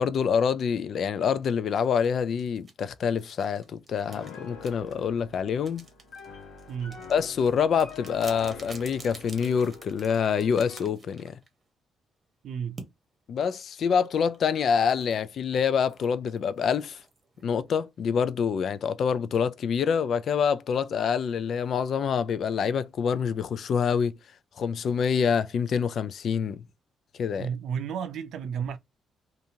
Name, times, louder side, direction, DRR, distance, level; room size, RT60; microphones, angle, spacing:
voice 1, 0.0-5.8 7.1-11.4 13.3-17.0 17.4-24.1 24.6-26.6 27.2-27.5, left 6 dB, 60° left, 0.3 m, -26 dB
sound 1, 1.8-11.7 12.8-12.9 14.2-18.1, right 3 dB, 35° right, 0.9 m, -50 dB
Piano, 4.0-11.0, left 5 dB, 80° left, 1.0 m, -46 dB
voice 2, 6.7-7.0 12.4-12.8 27.4-28.8, right 7 dB, 70° right, 0.5 m, -32 dB
2.7 x 2.4 x 2.6 m
cardioid pair, 90°, 0 cm